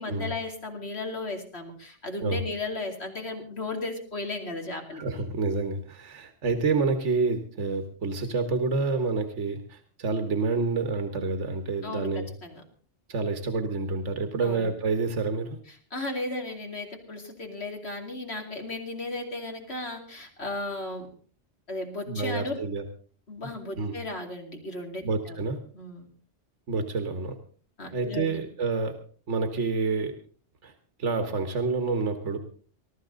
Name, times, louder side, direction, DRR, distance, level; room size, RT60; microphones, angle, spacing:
voice 1, 0.0-5.2 11.8-12.6 14.4-14.7 15.9-21.1 21.7-22.5 23.3-25.4 25.7-26.1 27.8-28.4, left 2 dB, 60° left, 3 dB, 2.9 m, -35 dB
voice 2, 4.9-12.3 13.1-15.6 22.1-22.8 23.8-24.0 25.0-25.6 26.7-27.4 27.9-29.0 29.3-30.1 30.6-30.7 31.0-32.4, right 4 dB, 85° right, 7 dB, 1.7 m, -28 dB
20.0 x 13.0 x 3.9 m, 0.43 s
omnidirectional pair, 1.2 m